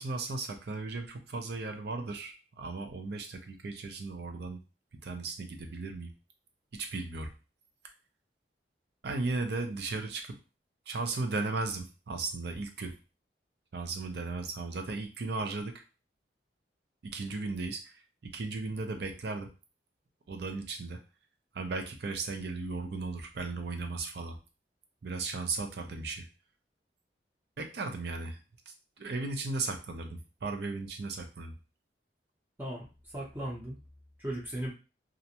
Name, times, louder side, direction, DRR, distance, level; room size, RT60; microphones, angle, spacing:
voice 1, 0.0-4.6 5.0-6.1 6.7-7.3 9.0-10.4 10.9-12.9 13.7-15.8 17.0-19.5 20.3-21.0 21.5-24.4 25.0-26.3 27.6-28.4 28.7-31.6, right 3 dB, 65° right, 6 dB, 0.5 m, -36 dB
voice 2, 32.6-33.8 34.2-34.7, right 1 dB, 10° right, -4 dB, 0.6 m, -37 dB
2.5 x 2.1 x 2.8 m, 0.31 s
head